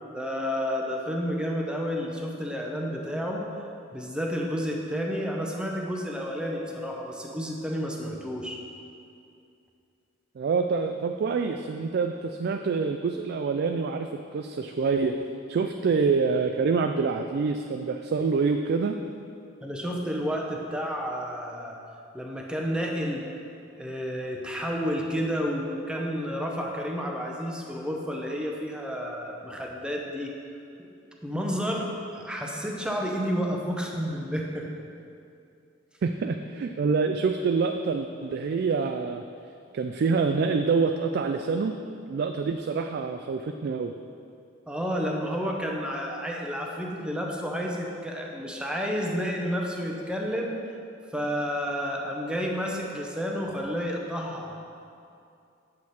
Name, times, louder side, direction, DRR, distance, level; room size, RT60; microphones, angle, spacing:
voice 1, 0.0-3.4 3.9-8.6 19.6-21.8 22.1-23.2 23.8-30.3 30.8-30.9 31.2-34.7 44.7-50.6 51.1-54.5, equal, 5° right, -1 dB, 0.8 m, -30 dB
voice 2, 10.4-15.2 15.5-19.0 36.0-39.2 39.7-41.7 42.1-43.9, right 4 dB, 55° right, 6 dB, 0.3 m, -26 dB
8.5 x 6.4 x 4.2 m, 2.5 s
head